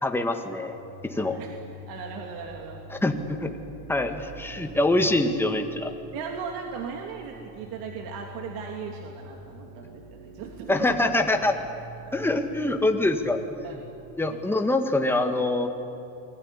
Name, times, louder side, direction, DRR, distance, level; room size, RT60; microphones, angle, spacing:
voice 1, 0.0-0.8 1.0-1.4 2.9-3.5 3.9-5.9 10.7-11.5 12.1-13.4 14.2-15.7, left 2 dB, 5° left, 5 dB, 1.9 m, -24 dB
sound 1, 0.7-14.4, right 1 dB, 85° right, 5.6 m, -46 dB
voice 2, 1.2-1.5 1.9-2.8 4.5-4.7 6.1-11.1 13.6-13.9, right 6 dB, 65° right, 2 dB, 2.9 m, -37 dB
28.0 x 21.5 x 10.0 m, 2.8 s
cardioid pair, 140°, 38 cm